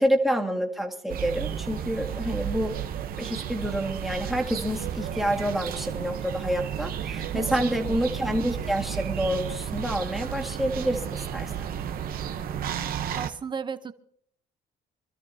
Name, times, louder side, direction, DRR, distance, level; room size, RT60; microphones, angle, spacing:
voice 1, 0.0-2.8 3.2-11.7, equal, ahead, 0 dB, 2.0 m, -28 dB
sound 1, 1.1-13.3, right 9 dB, 60° right, 1.0 m, -33 dB
voice 2, 7.3-8.0 13.1-13.9, right 6 dB, 25° right, 12 dB, 0.9 m, -35 dB
26.5 x 13.0 x 2.8 m, 0.64 s
cardioid pair, 110°, 17 cm